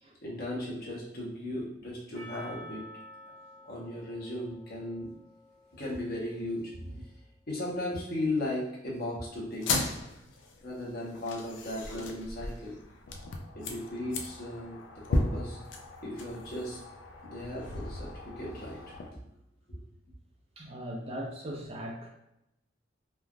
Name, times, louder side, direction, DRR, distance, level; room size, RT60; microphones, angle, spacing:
voice 1, 0.2-2.8 3.7-5.1 5.7-7.0 7.5-9.8 10.6-12.8 13.5-15.6 16.0-16.8 17.2-18.9 19.7-19.8, left 1 dB, 55° left, -4 dB, 0.9 m, -36 dB
Percussion, 2.1-6.6, left 1 dB, 20° left, 1.0 m, -51 dB
sound 1, 9.5-19.1, left 2 dB, 70° left, 0.4 m, -36 dB
voice 2, 20.6-22.1, equal, 30° right, 0 dB, 0.4 m, -39 dB
3.2 x 2.4 x 2.2 m, 0.86 s
head